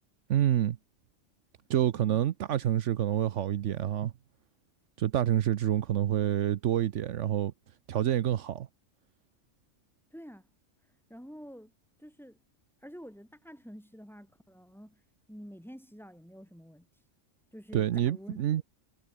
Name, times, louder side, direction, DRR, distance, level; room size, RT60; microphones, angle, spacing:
voice 1, 0.3-0.8 1.7-4.1 5.0-7.5 7.9-8.7 17.7-18.6, right 11 dB, 75° right, 1.0 m, -27 dB
voice 2, 10.1-10.5 11.1-11.7 12.0-12.4 12.8-15.0 15.3-16.9 17.5-18.6, equal, ahead, 7.1 m, -48 dB
omnidirectional pair, 1.3 m